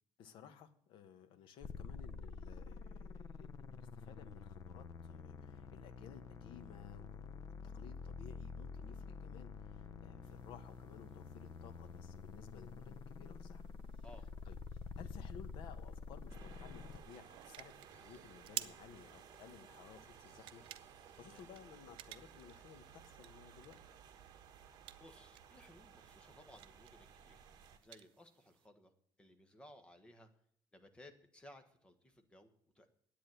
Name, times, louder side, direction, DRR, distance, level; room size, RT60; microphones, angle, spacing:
voice 1, 0.2-13.6 14.4-20.6 21.2-23.8, left 8 dB, 75° left, 10 dB, 1.3 m, -57 dB
sound 1, 1.6-17.0, left 5 dB, 40° left, 0.7 m, -49 dB
sound 2, 10.3-28.7, right 14 dB, 75° right, 0.7 m, -55 dB
sound 3, 16.3-27.8, right 8 dB, 50° right, 1.5 m, -58 dB
voice 2, 21.1-21.4 25.0-27.4 27.8-28.9 29.2-30.3 30.7-32.9, left 1 dB, 10° left, 7 dB, 1.3 m, -60 dB
10.5 x 8.5 x 9.3 m, 0.64 s
cardioid pair, 180°, 9 cm